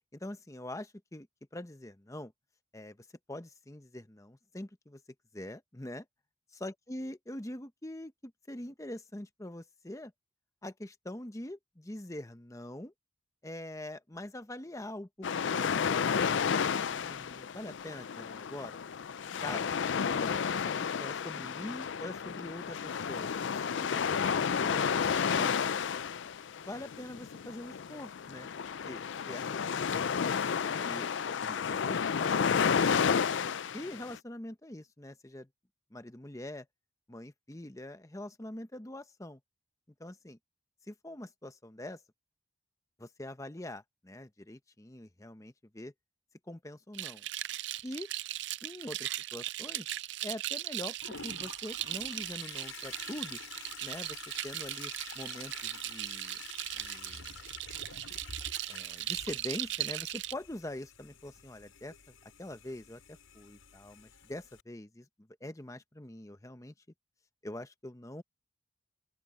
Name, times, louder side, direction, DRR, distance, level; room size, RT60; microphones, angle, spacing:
voice 1, 0.1-1.3 1.5-2.3 2.7-3.0 3.3-5.0 5.3-6.0 6.5-10.1 10.6-12.9 13.4-18.8 19.4-19.7 20.1-24.3 24.6-24.9 25.3-25.5 26.6-28.5 28.8-29.7 30.6-33.2 33.7-35.5 35.9-36.7 37.1-39.4 40.0-40.4 40.9-42.0 43.0-45.9 46.5-47.2 47.8-48.1 48.6-49.9 50.2-51.0 51.2-53.4 53.8-54.2 54.4-56.4 56.7-57.4 58.7-61.9 62.4-63.0 63.3-65.1 65.4-66.7 67.4-68.2, left 1 dB, 15° left, 0.9 m, -44 dB
sound 1, 15.2-34.2, left 6 dB, 65° left, 0.4 m, -31 dB
sound 2, 46.9-60.3, right 14 dB, 60° right, 0.5 m, -38 dB
Toilet flush, 51.0-64.6, left 5 dB, 80° left, 5.9 m, -49 dB
open air
head